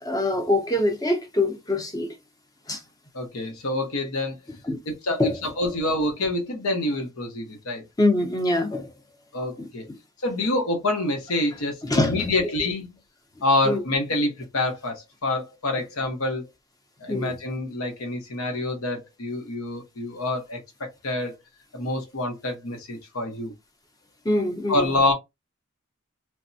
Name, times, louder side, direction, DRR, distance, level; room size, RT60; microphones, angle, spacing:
voice 1, 0.0-2.2 2.7-2.8 4.6-4.8 5.2-5.4 8.0-8.9 9.6-10.0 11.8-12.3 13.6-13.8 17.1-17.3 24.2-24.9, left 1 dB, 15° left, 0.5 m, -24 dB
voice 2, 3.1-4.4 4.9-7.8 9.3-9.9 10.2-12.9 13.4-16.5 17.0-21.4 21.7-23.5 24.7-25.1, left 2 dB, 85° left, 0.8 m, -27 dB
3.3 x 2.1 x 2.6 m
head